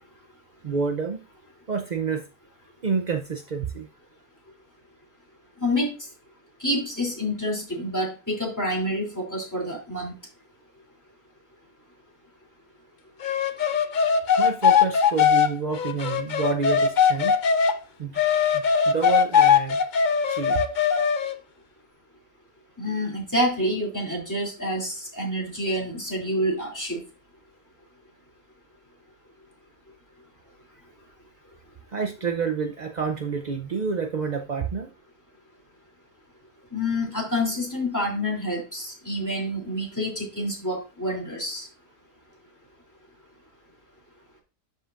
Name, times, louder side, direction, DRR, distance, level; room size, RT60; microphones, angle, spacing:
voice 1, 0.6-1.2 1.7-2.2 2.8-3.9 14.4-17.3 18.0-18.2 18.5-19.8 20.3-20.6 31.9-34.9, right 5 dB, 70° right, 4 dB, 0.4 m, -28 dB
voice 2, 5.6-5.9 6.6-10.1 22.8-27.0 36.7-41.7, equal, 10° left, -2 dB, 2.9 m, -28 dB
sound 1, 13.2-17.8 18.2-21.3, left 7 dB, 55° left, 0.5 m, -20 dB
12.0 x 5.4 x 2.5 m, 0.32 s
omnidirectional pair, 1.7 m